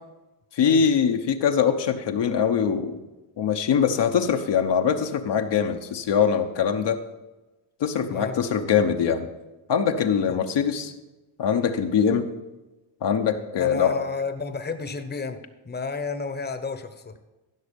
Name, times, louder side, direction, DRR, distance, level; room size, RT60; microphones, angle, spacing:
voice 1, 0.6-3.0 3.4-7.0 7.8-9.3 9.7-10.9 11.4-12.3 13.0-14.0, left 7 dB, 60° left, 5 dB, 1.0 m, -22 dB
voice 2, 13.6-15.4 15.6-17.1, left 4 dB, 20° left, 9 dB, 1.0 m, -31 dB
15.0 x 6.2 x 5.3 m, 1.1 s
cardioid pair, 85°, 46 cm